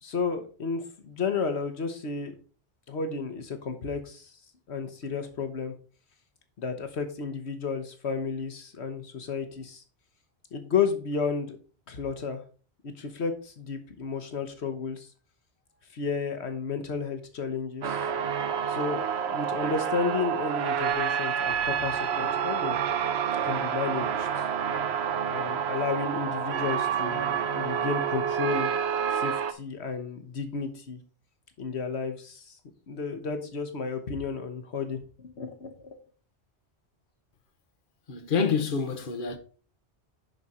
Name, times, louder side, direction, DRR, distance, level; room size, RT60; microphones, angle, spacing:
voice 1, 0.0-2.3 2.9-4.3 4.7-5.7 6.6-9.8 10.5-11.6 11.9-12.4 12.8-15.1 15.9-18.0 18.7-22.8 23.4-24.3 25.3-28.7 29.1-31.0 31.6-32.6 32.9-36.0, left 5 dB, 80° left, 1.3 m, -32 dB
sound 1, 17.8-29.5, right 7 dB, 75° right, 1.0 m, -28 dB
voice 2, 38.1-39.4, left 5 dB, 50° left, 1.3 m, -27 dB
10.5 x 5.0 x 4.2 m
omnidirectional pair, 1.1 m